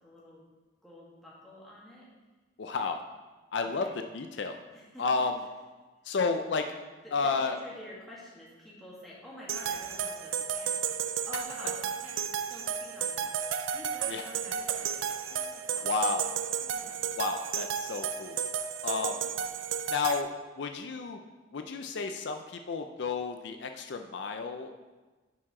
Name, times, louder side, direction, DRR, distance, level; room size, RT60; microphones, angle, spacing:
voice 1, 0.0-0.4 0.8-2.1 2.7-2.8 3.6-4.0 4.7-5.3 6.1-6.2 7.0-15.9 16.6-17.0 19.0-19.5, left 1 dB, ahead, -7 dB, 1.8 m, -49 dB
voice 2, 2.6-3.0 3.5-4.6 5.0-5.3 6.0-6.7 7.1-7.6 14.1-14.2 15.8-16.3 17.2-18.4 18.8-19.2 19.9-21.2 21.5-24.7, left 4 dB, 65° left, 6 dB, 0.4 m, -31 dB
sound 1, 9.5-20.2, right 8 dB, 85° right, 0.4 m, -33 dB
10.0 x 4.7 x 3.7 m, 1.3 s
head